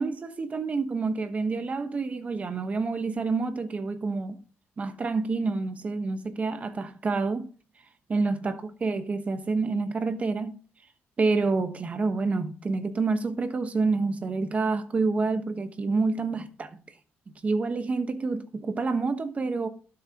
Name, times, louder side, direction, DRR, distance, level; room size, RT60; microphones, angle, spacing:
voice 1, 0.0-4.4 4.8-7.5 8.1-10.6 11.2-16.8 17.3-19.7, right 3 dB, 30° right, 1.1 m, -28 dB
12.0 x 6.7 x 2.9 m
cardioid pair, 145°, 5 cm